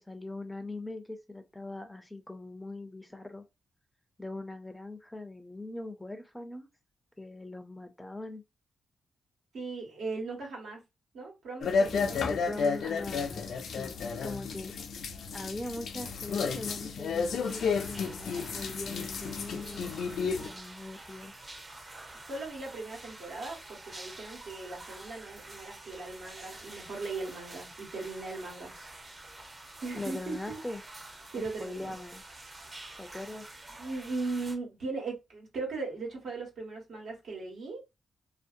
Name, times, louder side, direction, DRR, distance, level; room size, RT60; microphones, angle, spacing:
voice 1, 0.1-3.4 4.2-6.7 7.2-8.4 11.9-14.0 14.2-14.7 15.3-21.3 30.0-30.8 31.4-32.2 33.0-33.5, left 2 dB, 10° left, 0.4 m, -41 dB
voice 2, 9.5-10.8 11.1-13.0 22.3-28.7 29.8-30.6 31.3-32.0 32.8-33.0 33.8-37.8, right 3 dB, 80° right, 1.4 m, -38 dB
sound 1, 11.6-20.5, left 5 dB, 75° left, 0.4 m, -32 dB
sound 2, 17.4-34.6, right 2 dB, 30° right, 0.7 m, -48 dB
2.6 x 2.0 x 2.5 m
cardioid pair, 90°, 0 cm